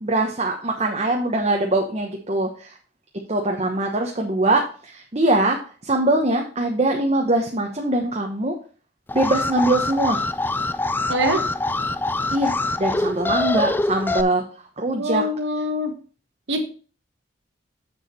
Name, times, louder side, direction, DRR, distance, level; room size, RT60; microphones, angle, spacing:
voice 1, 0.0-2.7 3.3-5.6 5.8-8.5 9.1-10.2 12.3-12.5 12.8-14.4 14.8-15.2, right 2 dB, 35° right, 1 dB, 1.0 m, -22 dB
Alarm, 9.1-14.2, left 2 dB, 10° left, 0.3 m, -24 dB
voice 2, 11.1-11.4 14.9-15.9 16.5-16.6, equal, 75° right, 6 dB, 1.3 m, -24 dB
7.4 x 6.6 x 4.4 m, 0.38 s
head